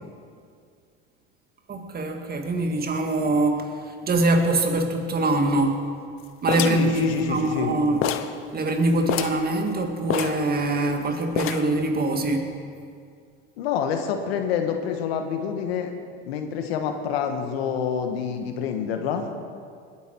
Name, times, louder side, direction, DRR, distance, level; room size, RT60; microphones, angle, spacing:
voice 1, 1.7-5.8 6.4-8.0 8.5-12.5, right 2 dB, 30° right, 4 dB, 2.0 m, -23 dB
sound 1, 6.5-7.7 8.0-8.4 8.7-8.8 9.0-9.5 10.1-10.9 11.4-11.8, left 10 dB, 45° left, 0.9 m, -28 dB
voice 2, 6.6-7.8 13.6-15.9 16.3-19.3, left 7 dB, 80° left, 5 dB, 1.5 m, -27 dB
20.5 x 9.4 x 4.7 m, 2.2 s
hypercardioid pair, 90°, 30 cm